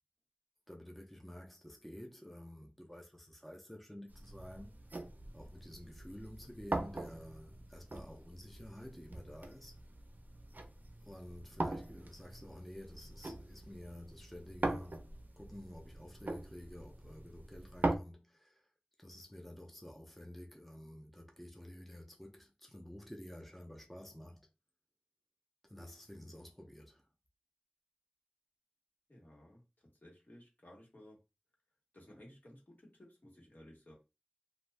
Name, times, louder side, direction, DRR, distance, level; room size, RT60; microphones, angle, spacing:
voice 1, 0.7-4.7 5.3-9.7 11.0-15.0 15.4-18.7 19.0-24.5 25.6-27.1, left 1 dB, 5° left, 0.6 m, -51 dB
sound 1, 4.1-18.0, right 2 dB, 60° right, 0.5 m, -42 dB
voice 2, 29.1-29.6 30.0-31.2 31.9-33.9, left 1 dB, 65° left, 1.3 m, -57 dB
2.5 x 2.3 x 3.3 m
wide cardioid pair, 50°, 3 cm